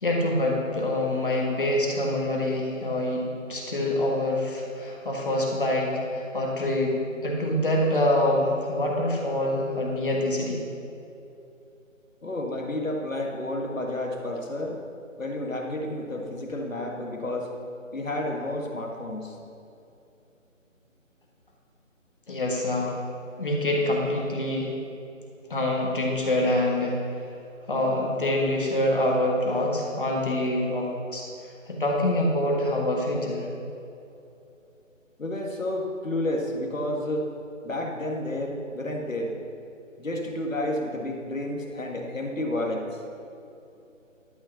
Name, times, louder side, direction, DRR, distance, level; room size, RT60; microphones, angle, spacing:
voice 1, 0.0-7.0 7.2-10.6 22.3-23.0 23.4-24.7 25.5-26.9 27.7-31.3 31.7-33.5, left 1 dB, 40° left, -2 dB, 1.6 m, -25 dB
voice 2, 12.2-14.8 15.2-17.5 17.9-19.4 35.2-37.3 37.6-39.3 40.0-42.9, left 1 dB, 75° left, 1 dB, 1.8 m, -30 dB
12.5 x 5.4 x 7.0 m, 2.8 s
figure-of-eight pair, 160°, 40 cm